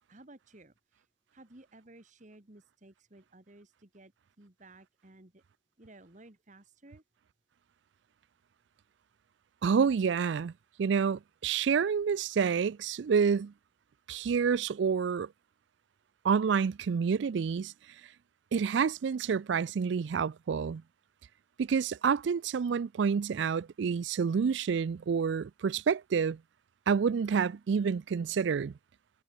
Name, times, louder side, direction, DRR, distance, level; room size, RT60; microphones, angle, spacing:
voice 1, 0.0-4.1 4.4-5.4 5.8-7.0, right 2 dB, 40° right, 1.7 m, -56 dB
voice 2, 9.6-10.5 10.8-13.5 14.1-15.3 16.2-17.7 18.5-20.8 21.6-26.4 26.9-28.7, right 6 dB, 65° right, 0.4 m, -28 dB
head